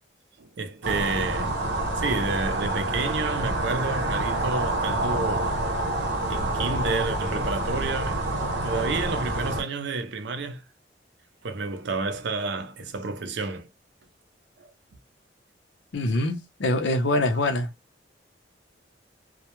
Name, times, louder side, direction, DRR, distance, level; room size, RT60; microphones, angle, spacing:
voice 1, 0.4-1.6 2.0-5.5 6.3-10.6 11.4-13.7 14.6-14.7, right 3 dB, 65° right, 0.5 m, -30 dB
sound 1, 0.8-9.6, right 2 dB, 90° right, 0.8 m, -27 dB
voice 2, 15.9-17.7, left 1 dB, 75° left, 0.6 m, -24 dB
2.2 x 2.1 x 2.9 m
head